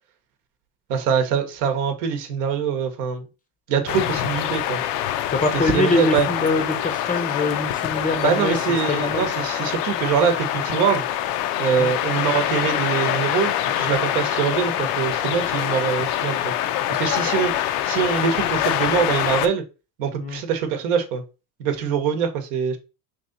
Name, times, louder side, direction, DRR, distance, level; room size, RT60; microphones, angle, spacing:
voice 1, 0.9-3.3 3.7-4.8 5.5-6.3 8.2-11.0 11.6-16.5 16.9-19.6 20.0-21.2 21.6-22.8, right 7 dB, 75° right, 0.9 m, -23 dB
sound 1, 3.9-19.5, left 12 dB, 70° left, 0.5 m, -25 dB
voice 2, 5.3-8.6 8.9-9.3 11.8-11.9 20.2-20.4, left 2 dB, 20° left, 0.5 m, -23 dB
3.0 x 2.7 x 3.8 m
hypercardioid pair, 90°, 46 cm